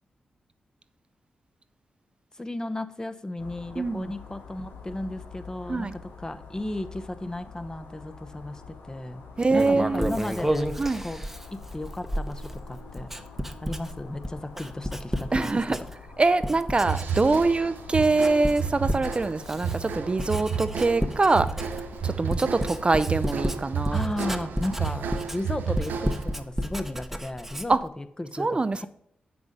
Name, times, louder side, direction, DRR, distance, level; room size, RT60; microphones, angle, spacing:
voice 1, 2.3-9.2 9.5-10.7 11.0-11.2 11.5-13.1 13.6-15.9 23.9-25.1 25.3-28.9, left 1 dB, 20° left, 10 dB, 0.7 m, -34 dB
sound 1, 3.4-22.9, left 5 dB, 90° left, 1.2 m, -46 dB
voice 2, 3.8-4.1 5.7-5.9 9.4-10.2 10.8-11.0 15.3-15.8 16.2-24.0 27.7-27.8 28.4-28.9, right 3 dB, 35° right, 12 dB, 0.4 m, -24 dB
Writing, 9.4-16.1 16.4-17.6 17.9-27.9, equal, 10° right, 0.8 m, -32 dB
sound 2, 16.8-26.4, right 7 dB, 90° right, 0.6 m, -32 dB
7.3 x 6.1 x 5.3 m, 0.73 s
cardioid pair, 50°, 3 cm